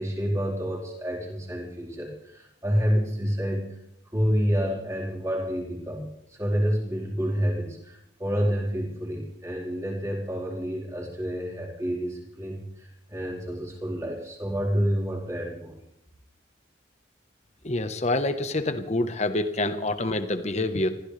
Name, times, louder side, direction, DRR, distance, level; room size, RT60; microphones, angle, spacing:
voice 1, 0.0-3.8 4.1-15.8, equal, 15° right, -3 dB, 4.6 m, -28 dB
voice 2, 17.6-20.9, left 2 dB, 35° left, 9 dB, 1.3 m, -26 dB
25.0 x 15.5 x 3.4 m, 0.79 s
head